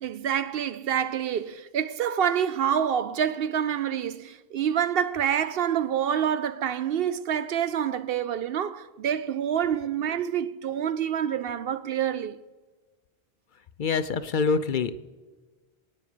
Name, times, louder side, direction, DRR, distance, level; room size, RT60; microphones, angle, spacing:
voice 1, 0.0-12.4, right 9 dB, 65° right, 0.8 m, -27 dB
voice 2, 13.8-15.0, left 5 dB, 55° left, 0.7 m, -25 dB
23.0 x 9.3 x 5.0 m
omnidirectional pair, 1.1 m